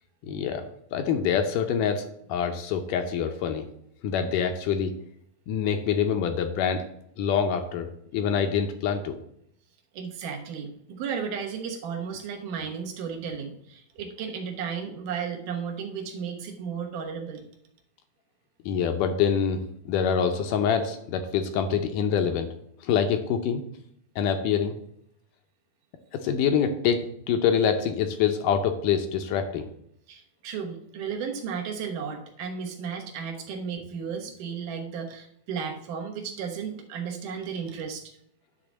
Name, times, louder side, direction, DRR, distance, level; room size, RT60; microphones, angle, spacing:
voice 1, 0.2-3.7 4.0-5.0 5.5-6.9 7.2-9.2 18.7-22.5 22.8-23.6 24.2-24.8 26.1-29.7, left 7 dB, 75° left, 6 dB, 2.1 m, -25 dB
voice 2, 9.9-17.4 30.1-38.2, right 6 dB, 70° right, 2 dB, 2.5 m, -34 dB
10.5 x 3.8 x 7.2 m, 0.71 s
omnidirectional pair, 4.1 m